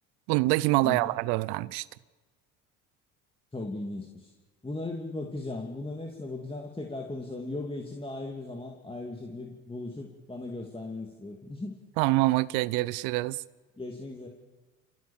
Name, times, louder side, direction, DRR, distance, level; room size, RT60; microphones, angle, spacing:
voice 1, 0.3-1.9 12.0-13.4, right 20 dB, 70° right, 0.8 m, -25 dB
voice 2, 3.5-4.3 4.6-11.7 13.8-14.3, left 2 dB, 15° left, 2.8 m, -37 dB
27.5 x 17.0 x 7.4 m
hypercardioid pair, 65°, 40 cm